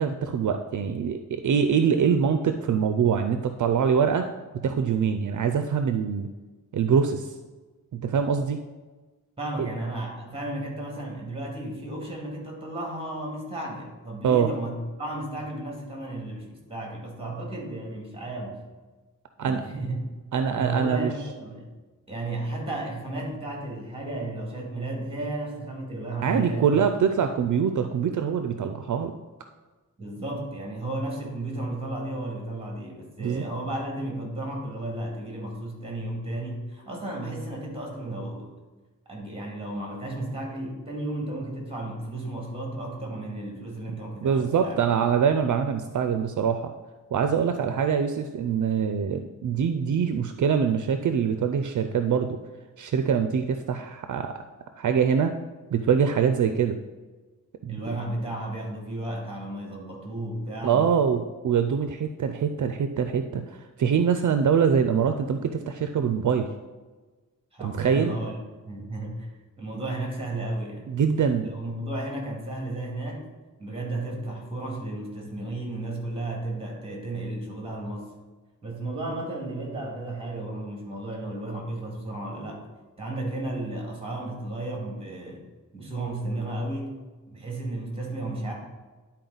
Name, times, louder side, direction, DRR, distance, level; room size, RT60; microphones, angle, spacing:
voice 1, 0.0-4.3 4.6-6.3 6.7-7.3 8.0-8.6 14.2-14.5 19.4-19.6 20.3-21.1 26.2-29.1 33.2-33.5 44.2-46.7 47.1-52.4 52.8-54.3 54.8-55.3 55.7-56.8 57.6-57.8 60.6-66.5 67.6-68.1 70.9-71.5, right 7 dB, 65° right, 7 dB, 0.5 m, -24 dB
voice 2, 9.4-18.6 19.4-20.0 20.5-21.7 22.1-26.8 30.0-38.5 39.1-44.8 57.7-61.1 67.5-68.4 68.6-69.3 69.6-70.9 71.4-73.3 73.6-78.1 78.6-82.6 83.0-85.4 85.7-87.0 87.3-88.5, right 2 dB, 15° right, 0 dB, 2.1 m, -33 dB
11.0 x 4.3 x 3.9 m, 1.3 s
wide cardioid pair, 110°, 32 cm